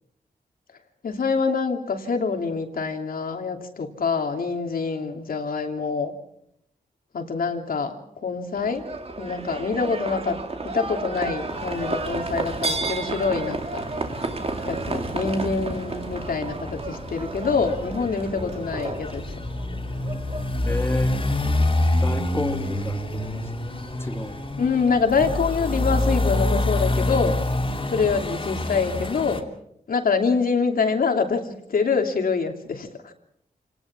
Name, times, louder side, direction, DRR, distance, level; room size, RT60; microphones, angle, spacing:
voice 1, 1.0-6.1 7.1-8.8 9.2-10.4 10.6-13.8 14.6-19.3 24.6-27.4 27.9-29.5 29.9-33.1, left 5 dB, 75° left, 4 dB, 2.9 m, -25 dB
Livestock farm animals working animals, 8.6-25.0, right 3 dB, 40° right, 2.6 m, -33 dB
sound 1, 11.5-29.4, left 2 dB, 35° left, 3.0 m, -28 dB
voice 2, 20.7-21.2 22.0-23.1 24.0-24.4 27.8-27.9, left 1 dB, 15° left, 7 dB, 2.1 m, -31 dB
28.0 x 18.5 x 6.1 m, 0.74 s
wide cardioid pair, 100°, 15 cm